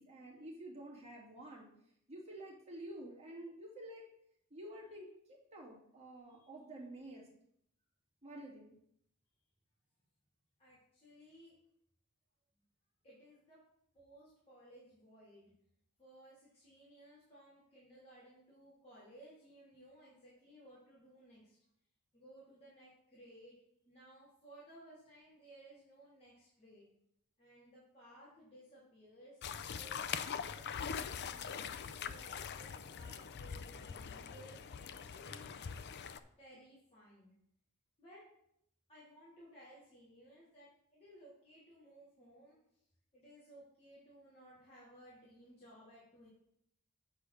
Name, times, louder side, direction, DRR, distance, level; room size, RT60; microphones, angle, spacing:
voice 1, 0.0-1.7 2.1-4.0 4.5-7.3 8.2-8.7, right 1 dB, 30° right, -4 dB, 2.8 m, -50 dB
voice 2, 10.6-11.5 13.0-13.6 13.9-15.5 16.0-21.6 22.1-23.6 23.8-26.9 27.4-31.7 32.0-35.7 36.4-37.3 38.0-38.2 38.9-42.6 43.1-46.3, right 1 dB, 30° left, -10 dB, 3.4 m, -59 dB
sound 1, 29.4-36.2, left 7 dB, 50° left, 0.5 m, -43 dB
8.1 x 4.7 x 6.5 m, 0.72 s
head